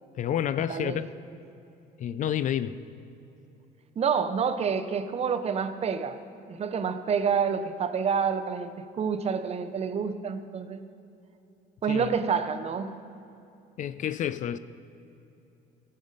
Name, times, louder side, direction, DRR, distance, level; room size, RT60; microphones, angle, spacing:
voice 1, 0.2-1.1 2.0-2.8 11.9-12.2 13.8-14.6, left 10 dB, 50° left, 0.4 m, -29 dB
voice 2, 0.7-1.0 4.0-6.2 6.5-10.8 11.8-12.9, right 6 dB, 40° right, 0.6 m, -28 dB
15.0 x 5.5 x 5.1 m
cardioid pair, 110°, 17 cm